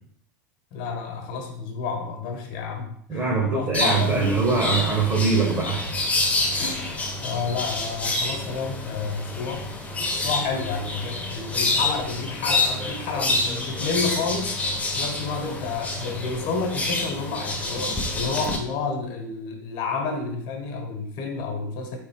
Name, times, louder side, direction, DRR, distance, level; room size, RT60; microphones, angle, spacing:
voice 1, 0.7-4.4 6.6-9.7 10.1-14.6 15.0-22.0, left 4 dB, 50° left, 3 dB, 1.2 m, -30 dB
voice 2, 3.1-5.9, right 4 dB, 30° right, -2 dB, 1.2 m, -22 dB
sound 1, 3.7-18.6, left 2 dB, 15° left, 1.0 m, -28 dB
4.0 x 3.4 x 3.6 m, 0.68 s
hypercardioid pair, 100°, 10 cm